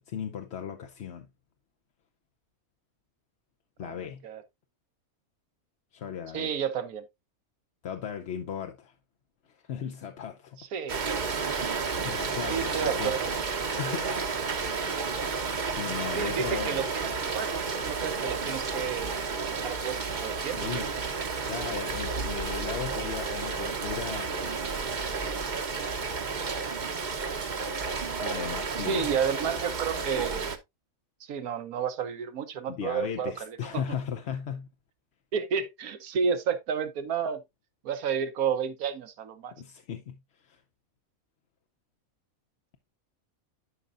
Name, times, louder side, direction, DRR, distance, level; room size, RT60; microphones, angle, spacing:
voice 1, 0.1-1.3 3.8-4.2 5.9-6.5 7.8-8.9 9.5-10.6 11.8-13.1 13.8-14.1 15.7-16.8 20.6-20.9 21.4-24.7 28.2-29.1 32.7-34.7 39.6-40.6, left 8 dB, 55° left, 0.9 m, -37 dB
voice 2, 6.3-7.0 10.6-11.0 12.5-13.3 16.1-19.2 19.6-20.7 28.9-30.5 31.3-34.0 35.3-37.4 37.8-39.5, right 7 dB, 80° right, 1.4 m, -31 dB
Rain, 10.9-30.6, right 4 dB, 40° right, 0.9 m, -31 dB
11.0 x 5.3 x 2.5 m
omnidirectional pair, 1.5 m